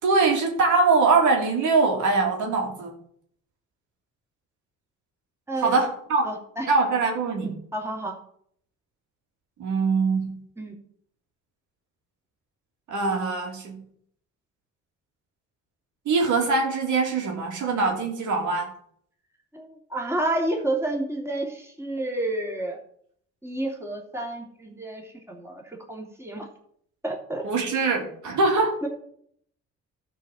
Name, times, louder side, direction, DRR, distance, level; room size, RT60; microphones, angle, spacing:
voice 1, 0.0-2.9 5.6-6.3 6.7-7.5 9.6-10.4 12.9-13.8 16.1-18.7 27.4-28.8, right 4 dB, 75° right, 0 dB, 2.8 m, -23 dB
voice 2, 5.5-5.9 6.2-6.7 7.4-8.1 10.6-10.7 19.5-22.8 23.4-26.5 27.0-27.4 28.8-28.9, right 1 dB, 10° right, 0 dB, 3.0 m, -30 dB
13.0 x 4.7 x 7.0 m, 0.65 s
cardioid pair, 90°, 30 cm